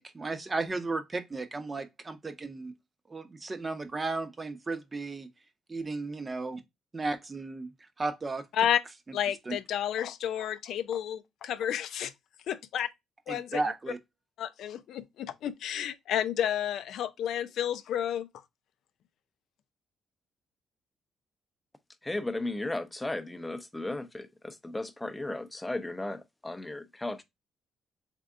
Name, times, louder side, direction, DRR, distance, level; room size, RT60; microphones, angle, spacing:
voice 1, 0.0-2.7 3.1-5.3 5.7-6.6 6.9-7.7 8.0-8.4 9.5-9.6 13.3-14.0, right 3 dB, 25° right, 0.7 m, -34 dB
voice 2, 9.1-12.1 12.5-12.9 13.3-13.6 14.4-18.3, left 10 dB, 75° left, 0.4 m, -31 dB
voice 3, 22.0-27.2, left 2 dB, 10° left, 0.6 m, -35 dB
3.6 x 3.4 x 3.5 m
cardioid pair, 90°, 0 cm